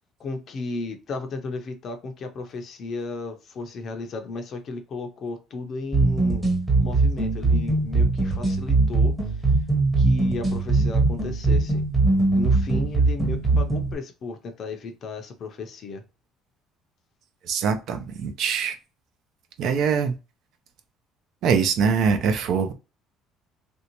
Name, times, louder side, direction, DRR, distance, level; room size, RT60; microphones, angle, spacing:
voice 1, 0.2-6.5 6.8-9.5 10.0-11.8 12.3-16.0, left 3 dB, 45° left, 0.6 m, -34 dB
sound 1, 5.9-13.9, right 3 dB, 10° right, 1.0 m, -21 dB
voice 2, 17.5-18.8 19.6-20.1 21.4-22.7, right 6 dB, 55° right, 0.6 m, -23 dB
3.3 x 2.7 x 2.9 m
cardioid pair, 145°, 0 cm